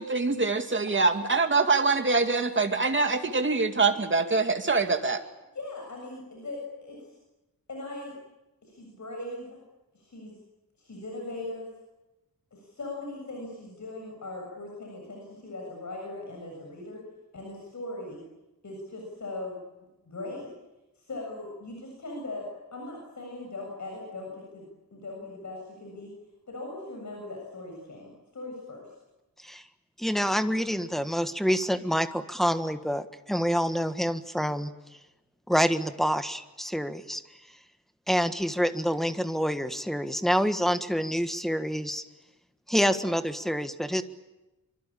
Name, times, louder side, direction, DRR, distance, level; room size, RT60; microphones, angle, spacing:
voice 1, 0.0-5.2, right 4 dB, 35° right, 6 dB, 2.4 m, -24 dB
voice 2, 5.5-7.1 7.7-8.1 8.6-9.6 9.9-10.4 10.8-11.7 12.5-17.0 17.3-18.2 18.6-19.6 20.0-20.5 21.0-24.7 24.9-26.1 26.5-28.9, left 2 dB, 55° left, 0 dB, 7.5 m, -39 dB
voice 3, 30.0-34.7 35.5-37.2 38.1-42.0 42.7-44.0, equal, ahead, 9 dB, 1.5 m, -27 dB
26.0 x 25.0 x 8.7 m, 1.0 s
wide cardioid pair, 150°, 34 cm